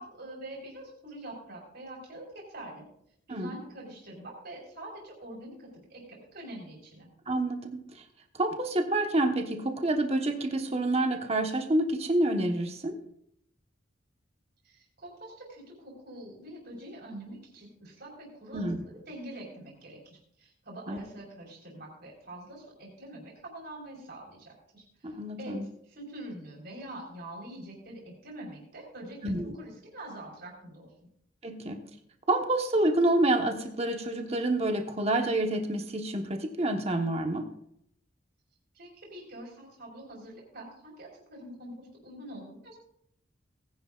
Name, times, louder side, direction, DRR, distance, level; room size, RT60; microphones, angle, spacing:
voice 1, 0.0-2.8 3.3-7.1 14.6-24.8 25.4-25.6 26.0-30.9 38.7-42.8, right 1 dB, 55° right, -1 dB, 4.1 m, -45 dB
voice 2, 7.3-7.8 8.4-13.0 18.5-18.8 20.9-21.0 25.0-25.7 29.2-29.5 31.4-31.8 32.3-37.5, right 1 dB, 35° right, 4 dB, 1.2 m, -28 dB
19.0 x 10.5 x 2.4 m, 0.71 s
head